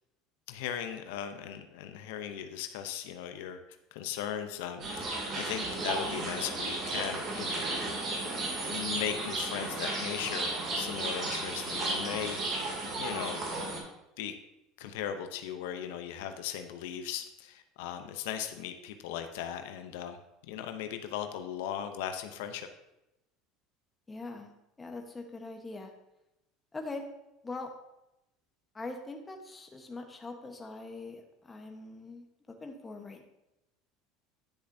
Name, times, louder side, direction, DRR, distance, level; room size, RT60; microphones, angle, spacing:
voice 1, 0.5-3.6 3.9-7.7 8.7-12.7 13.0-13.4 14.2-14.3 14.8-20.2 20.4-22.7, left 9 dB, 80° left, 7 dB, 0.6 m, -38 dB
sound 1, 4.8-13.8, right 2 dB, 45° right, 2.5 m, -34 dB
voice 2, 24.1-24.5 24.8-25.9 26.7-27.1 27.4-27.7 28.7-33.3, left 3 dB, 15° left, 4 dB, 1.1 m, -42 dB
10.0 x 6.6 x 2.7 m, 0.90 s
supercardioid pair, 120°, 0 cm